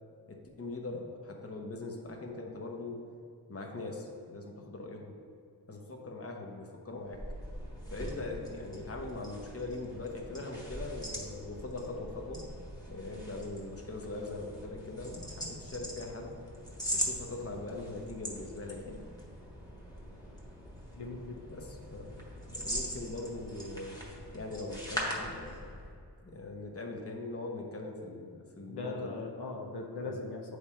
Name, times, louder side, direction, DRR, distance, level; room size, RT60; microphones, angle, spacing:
voice 1, 0.3-3.0 3.5-5.2 5.7-7.3 7.9-12.4 12.9-16.3 16.9-19.0 21.5-24.0 24.3-25.6 26.2-29.2 30.0-30.2, left 2 dB, 35° left, 1 dB, 0.9 m, -41 dB
sound 1, 7.0-25.9, equal, 10° left, 1.3 m, -41 dB
voice 2, 21.0-21.4 28.7-30.6, left 3 dB, 75° left, 1 dB, 0.7 m, -39 dB
8.7 x 3.4 x 4.3 m, 2.3 s
wide cardioid pair, 80°, 41 cm